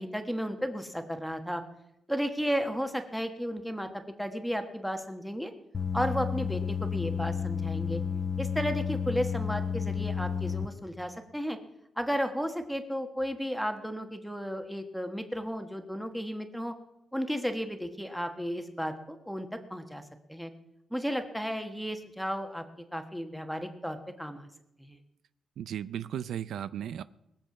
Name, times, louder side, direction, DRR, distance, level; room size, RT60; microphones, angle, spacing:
voice 1, 0.0-1.6 2.1-3.9 4.2-5.5 5.9-8.0 8.4-11.6 12.0-16.7 17.1-20.0 20.3-20.5 20.9-22.6 22.9-24.5 24.8-25.0, equal, ahead, 6 dB, 1.3 m, -33 dB
sound 1, 5.7-10.7, left 7 dB, 30° left, 0.9 m, -31 dB
voice 2, 25.6-27.0, right 10 dB, 80° right, 15 dB, 0.4 m, -35 dB
21.0 x 7.7 x 5.9 m, 0.83 s
wide cardioid pair, 140°, 0 cm